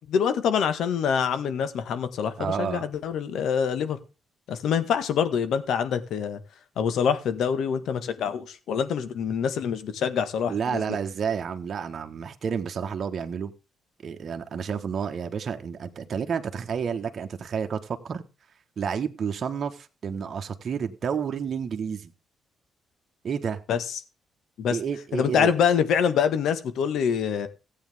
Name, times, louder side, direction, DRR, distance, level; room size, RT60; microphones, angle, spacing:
voice 1, 0.1-4.0 4.5-6.4 6.8-10.8 23.7-24.0 24.6-24.8 25.1-27.5, left 7 dB, 75° left, 1.7 m, -25 dB
voice 2, 2.4-2.9 10.5-13.5 14.0-18.2 18.8-22.1 23.2-23.6 24.7-25.5, right 6 dB, 50° right, 1.4 m, -30 dB
15.0 x 8.7 x 3.6 m
cardioid pair, 90°, 0 cm